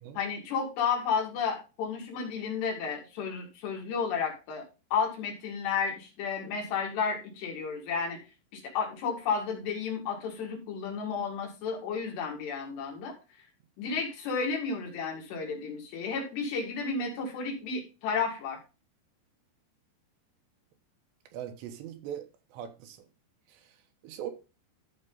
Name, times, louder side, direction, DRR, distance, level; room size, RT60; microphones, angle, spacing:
voice 1, 0.2-4.6 4.9-8.2 8.5-13.1 13.8-18.6, left 5 dB, 70° left, 4.5 m, -32 dB
voice 2, 21.3-22.3 22.5-23.0 24.0-24.3, right 10 dB, 80° right, 3.3 m, -39 dB
13.5 x 5.1 x 4.0 m
omnidirectional pair, 5.1 m